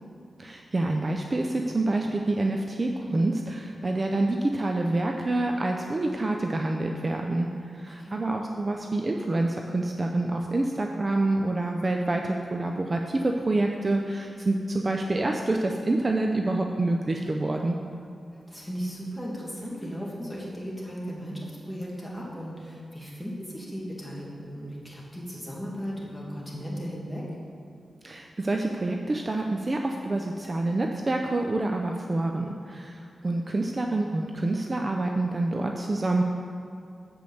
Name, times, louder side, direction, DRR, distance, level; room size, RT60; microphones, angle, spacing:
voice 1, 0.4-17.8 28.0-36.2, right 2 dB, 35° right, 2 dB, 0.5 m, -27 dB
voice 2, 7.8-8.3 18.5-27.3, equal, 5° left, -5 dB, 2.0 m, -36 dB
7.6 x 5.2 x 6.9 m, 2.4 s
cardioid pair, 80°, 0 cm